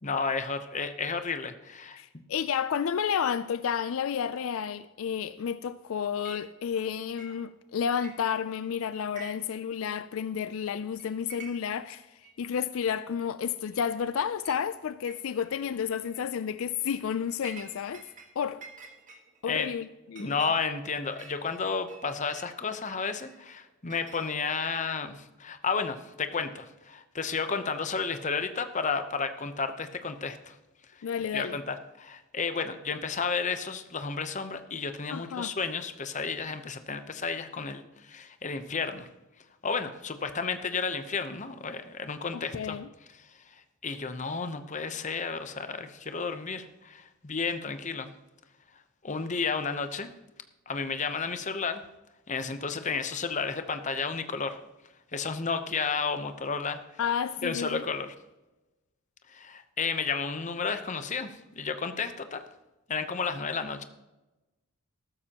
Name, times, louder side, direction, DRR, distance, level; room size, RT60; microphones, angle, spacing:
voice 1, 0.0-2.0 19.5-19.7 20.2-30.6 31.3-39.1 39.6-42.8 43.2-48.1 49.0-50.1 50.7-51.8 52.3-54.6 55.1-56.8 57.4-58.1 59.3-62.4 62.9-63.8, left 5 dB, 35° left, 0.8 m, -32 dB
voice 2, 2.0-18.0 18.4-18.6 19.4-20.4 31.0-31.6 35.1-35.5 42.3-42.9 57.0-57.8, left 7 dB, 70° left, 0.4 m, -31 dB
Chink clink, 6.2-6.5 6.7-7.6 7.9-8.7 9.0-9.6 9.9-10.0 10.6-10.7 11.0-11.8 12.2-12.3 13.2-13.3 13.7-14.1 14.4-14.6 15.1-15.5 16.0-16.2 16.7-18.3 18.6-22.5 23.2-24.7, right 4 dB, 35° right, 1.6 m, -50 dB
14.5 x 13.0 x 2.9 m
head